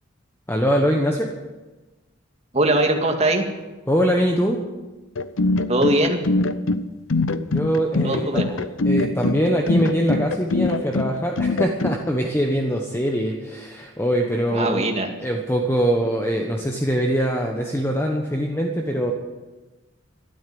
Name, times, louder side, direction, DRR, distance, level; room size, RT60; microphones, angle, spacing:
voice 1, 0.5-1.3 3.9-4.6 7.5-8.6 8.9-14.9 15.2-19.1, equal, 10° left, 1 dB, 1.2 m, -22 dB
voice 2, 2.5-3.4 5.7-6.3 8.0-8.4 14.5-15.1, right 1 dB, 35° right, 3 dB, 2.0 m, -20 dB
sound 1, 5.2-12.0, left 2 dB, 75° left, 0.7 m, -23 dB
13.0 x 12.5 x 7.8 m, 1.2 s
head